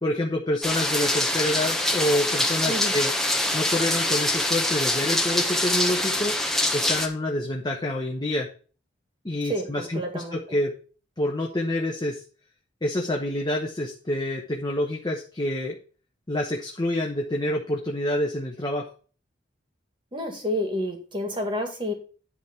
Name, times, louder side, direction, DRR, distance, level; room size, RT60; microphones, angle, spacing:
voice 1, 0.0-3.1 3.5-6.4 6.7-8.5 9.2-10.7 11.2-12.2 12.8-15.8 16.3-18.9, left 1 dB, 25° left, 0 dB, 1.0 m, -27 dB
sound 1, 0.6-7.1, left 1 dB, ahead, 1.3 m, -24 dB
voice 2, 9.4-10.4 20.1-21.9, equal, 25° right, 4 dB, 2.1 m, -29 dB
10.5 x 3.6 x 6.9 m, 0.39 s
head